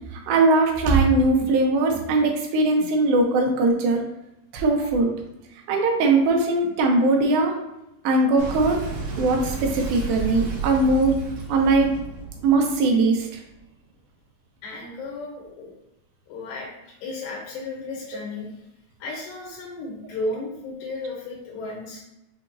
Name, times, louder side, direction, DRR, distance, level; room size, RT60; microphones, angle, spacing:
voice 1, 0.3-4.0 4.5-5.1 5.7-7.6 8.0-8.8 9.2-11.2 11.5-11.9 12.4-13.3, right 2 dB, 80° right, 1 dB, 2.6 m, -20 dB
Boom, 8.4-13.6, right 4 dB, 60° right, 2.5 m, -32 dB
voice 2, 14.6-15.7 16.3-18.7 19.0-22.0, left 2 dB, 75° left, -2 dB, 2.5 m, -34 dB
6.9 x 2.9 x 2.6 m, 0.92 s
omnidirectional pair, 4.2 m